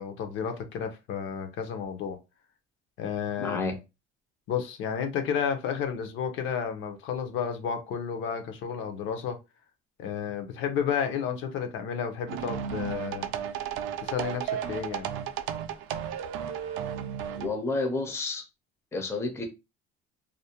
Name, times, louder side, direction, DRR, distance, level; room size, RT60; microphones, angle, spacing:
voice 1, 0.0-2.2 3.0-3.8 4.5-9.4 10.0-13.3 14.0-15.1, left 7 dB, 65° left, 0.6 m, -32 dB
voice 2, 3.4-3.8 17.4-18.5 18.9-19.4, left 3 dB, 10° left, 0.4 m, -30 dB
sound 1, 12.3-17.5, right 9 dB, 70° right, 0.4 m, -34 dB
2.5 x 2.1 x 2.8 m
cardioid pair, 140°, 21 cm